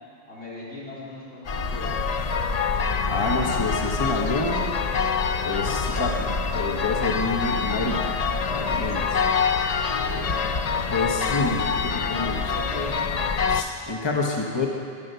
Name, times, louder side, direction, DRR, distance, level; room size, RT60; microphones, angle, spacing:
voice 1, 0.2-2.0 9.9-10.4 11.2-11.4 11.7-11.9 12.2-13.0, left 1 dB, 75° left, -8 dB, 4.5 m, -39 dB
sound 1, 1.5-13.6, left 5 dB, 45° left, 0.5 m, -25 dB
voice 2, 3.1-4.6 5.4-8.2 8.5-9.2 10.9-12.4 13.5-14.7, left 3 dB, 25° left, 0 dB, 1.1 m, -28 dB
14.0 x 10.5 x 6.8 m, 2.4 s
omnidirectional pair, 1.1 m